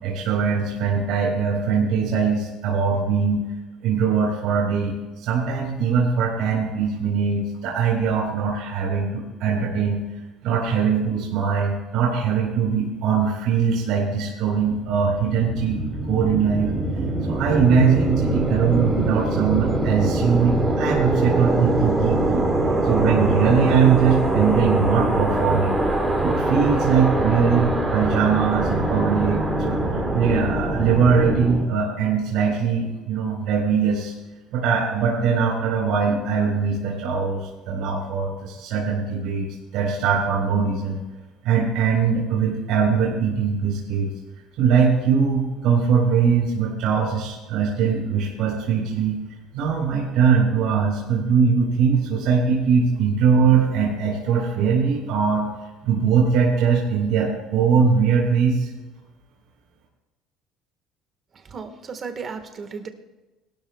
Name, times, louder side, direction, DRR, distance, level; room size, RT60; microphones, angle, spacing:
voice 1, 0.0-3.4 3.8-4.9 5.2-10.0 10.4-15.8 16.1-16.7 17.3-22.5 22.8-25.8 26.2-29.7 30.1-34.1 34.5-41.0 41.4-44.1 44.6-49.2 49.5-55.5 55.8-58.7, right 6 dB, 65° right, -3 dB, 4.2 m, -21 dB
sound 1, 14.7-31.6, right 2 dB, 15° right, 2.7 m, -23 dB
voice 2, 61.3-62.9, right 5 dB, 30° right, 6 dB, 1.5 m, -35 dB
22.0 x 13.0 x 2.3 m, 1.1 s
cardioid pair, 150°, 0 cm